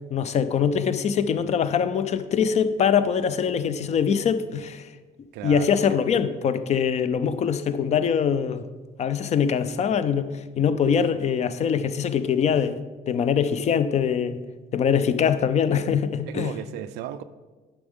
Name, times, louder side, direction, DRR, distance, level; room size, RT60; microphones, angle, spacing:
voice 1, 0.1-4.9 5.4-8.6 9.0-12.8 13.1-14.4 14.7-16.5, left 7 dB, 40° left, 0.5 m, -23 dB
voice 2, 5.3-6.0 10.8-11.2 16.3-17.2, right 11 dB, 85° right, 0.4 m, -35 dB
9.9 x 6.1 x 3.6 m
cardioid pair, 110°, 17 cm